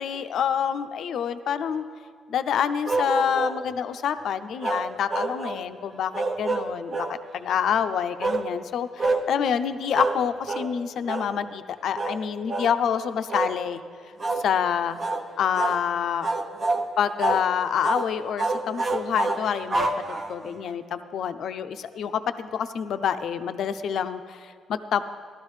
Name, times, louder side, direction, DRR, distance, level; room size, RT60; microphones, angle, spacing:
voice 1, 0.0-1.8 2.3-13.8 14.4-15.0 15.4-16.3 17.0-25.0, left 8 dB, 70° left, 10 dB, 0.5 m, -27 dB
sound 1, 2.9-3.6 4.6-5.6 6.1-7.2 8.2-8.5 9.0-9.3 9.9-10.2 10.5-10.7 11.1-11.3 12.0-12.2 12.5-12.7 13.3-13.6 14.2-14.5 15.0-15.2 15.6-15.8 16.2-16.9 17.2-17.5 17.8-18.1 18.4-20.5, right 3 dB, 40° right, 0.8 m, -27 dB
15.0 x 12.0 x 3.2 m, 2.2 s
cardioid pair, 90°, 0 cm